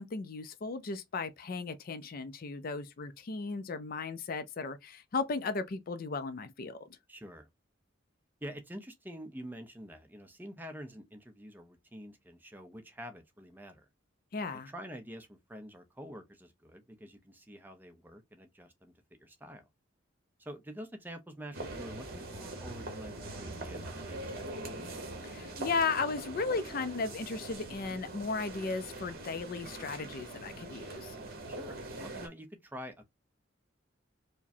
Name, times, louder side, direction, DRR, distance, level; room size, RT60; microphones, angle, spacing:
voice 1, 0.0-6.8 14.3-14.7 25.2-31.2, left 4 dB, 45° left, 0.4 m, -35 dB
voice 2, 7.1-7.5 8.4-13.9 14.5-18.9 19.2-19.6 20.4-24.7 31.5-33.0, equal, 10° right, 0.6 m, -47 dB
sound 1, 21.5-32.3, right 2 dB, 50° right, 1.1 m, -42 dB
4.7 x 2.1 x 2.6 m
head